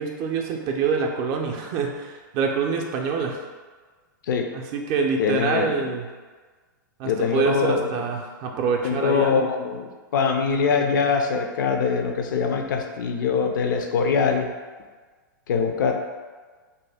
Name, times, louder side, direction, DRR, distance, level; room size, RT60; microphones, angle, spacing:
voice 1, 0.0-3.4 4.5-6.1 7.0-9.5, right 5 dB, 40° right, 1 dB, 0.4 m, -26 dB
voice 2, 5.2-5.9 7.0-8.0 8.8-14.5 15.5-16.0, left 5 dB, 70° left, 4 dB, 0.4 m, -23 dB
2.6 x 2.2 x 3.3 m, 1.4 s
hypercardioid pair, 110°, 11 cm